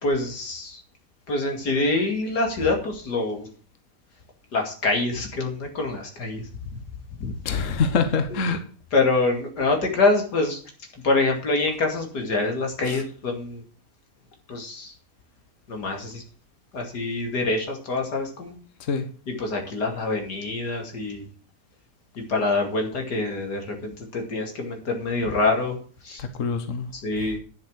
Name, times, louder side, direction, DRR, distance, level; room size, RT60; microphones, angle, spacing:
voice 1, 0.0-0.8 1.3-3.5 4.5-6.5 7.2-7.4 8.3-8.4 8.9-10.6 11.0-13.6 14.5-14.9 15.7-16.2 16.7-18.6 19.3-21.3 22.2-25.7 26.0-26.2 26.9-27.4, left 3 dB, 90° left, 3 dB, 3.0 m, -25 dB
voice 2, 7.4-8.6 12.9-13.0 18.8-19.0 26.2-26.9, left 5 dB, 55° left, 8 dB, 1.5 m, -25 dB
10.0 x 7.5 x 6.4 m, 0.42 s
omnidirectional pair, 1.7 m